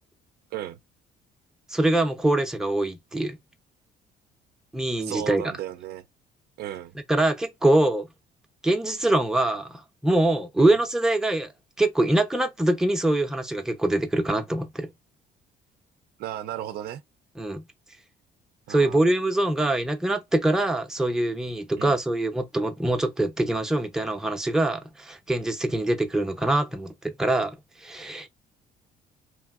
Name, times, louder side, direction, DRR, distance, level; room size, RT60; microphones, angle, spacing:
voice 1, 1.7-3.4 4.7-5.4 7.1-8.1 8.6-11.5 11.8-14.9 17.4-17.6 18.7-28.3, right 1 dB, 5° right, 0.5 m, -24 dB
voice 2, 5.0-6.0 6.6-6.9 10.6-10.7 16.2-17.0 18.7-19.0 21.8-22.0, right 12 dB, 70° right, 0.4 m, -35 dB
3.0 x 2.6 x 2.4 m
cardioid pair, 110°, 17 cm